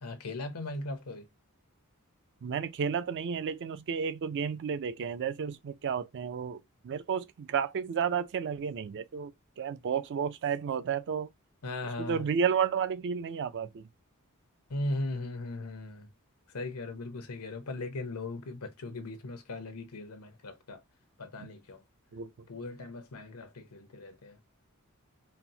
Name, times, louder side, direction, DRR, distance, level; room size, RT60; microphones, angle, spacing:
voice 1, 0.0-1.3 11.6-12.2 14.7-16.1 16.5-20.8 21.2-21.8 22.5-24.4, left 2 dB, 85° left, 0.8 m, -38 dB
voice 2, 2.4-11.3 12.0-13.8 22.1-22.3, right 7 dB, 55° right, 0.4 m, -32 dB
4.3 x 2.0 x 2.7 m
head